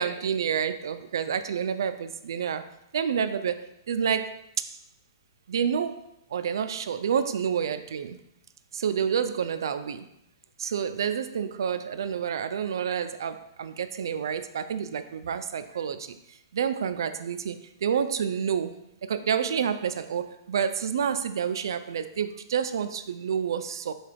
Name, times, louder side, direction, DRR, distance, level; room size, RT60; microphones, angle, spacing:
voice 1, 0.0-2.6 2.9-3.6 3.9-4.4 4.6-4.7 5.5-6.0 6.3-8.2 8.7-10.1 10.6-16.2 16.5-18.8 19.1-23.9, right 7 dB, 75° right, 11 dB, 0.4 m, -29 dB
6.6 x 2.3 x 3.4 m, 0.83 s
hypercardioid pair, 160°, 2 cm